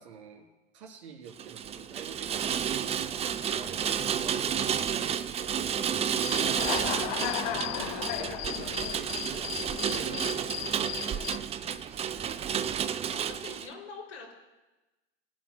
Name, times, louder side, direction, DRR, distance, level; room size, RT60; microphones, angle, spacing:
voice 1, 0.0-5.6 6.3-11.5 11.9-12.4, right 6 dB, 70° right, 0 dB, 3.5 m, -49 dB
Rain, 1.3-13.7, right 8 dB, 20° right, 0.5 m, -31 dB
voice 2, 5.6-6.0 6.3-6.7 13.0-14.3, left 4 dB, 85° left, -4 dB, 5.2 m, -46 dB
Human voice / Cricket, 6.2-11.4, left 15 dB, 50° left, 0.7 m, -35 dB
23.0 x 11.5 x 2.2 m, 1.1 s
hypercardioid pair, 95°, 34 cm